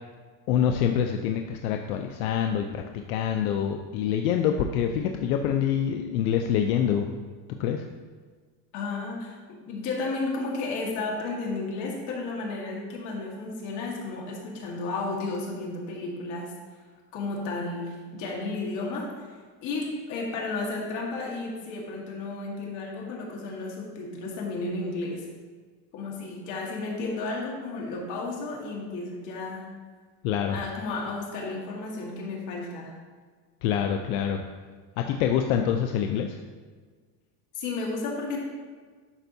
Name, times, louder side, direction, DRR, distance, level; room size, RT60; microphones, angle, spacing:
voice 1, 0.5-2.8 3.1-7.1 7.6-7.8 30.2-30.6 33.6-34.4 35.0-36.4, left 8 dB, 75° left, 4 dB, 0.6 m, -26 dB
voice 2, 8.7-16.5 17.1-25.3 25.9-29.7 30.5-32.9 37.5-38.4, left 3 dB, 45° left, -2 dB, 1.6 m, -33 dB
11.5 x 4.5 x 2.7 m, 1.5 s
cardioid pair, 160°, 42 cm